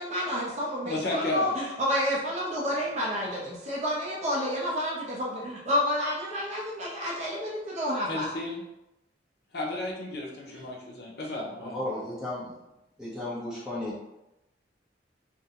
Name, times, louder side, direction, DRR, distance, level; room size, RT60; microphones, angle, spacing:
voice 1, 0.0-8.3, equal, 35° right, -4 dB, 0.5 m, -30 dB
voice 2, 0.8-1.5 8.1-8.6 9.5-11.9, left 2 dB, 55° left, -2 dB, 0.6 m, -33 dB
voice 3, 11.6-12.5 13.0-14.0, left 1 dB, 5° right, -8 dB, 0.7 m, -34 dB
2.5 x 2.1 x 2.8 m, 0.92 s
head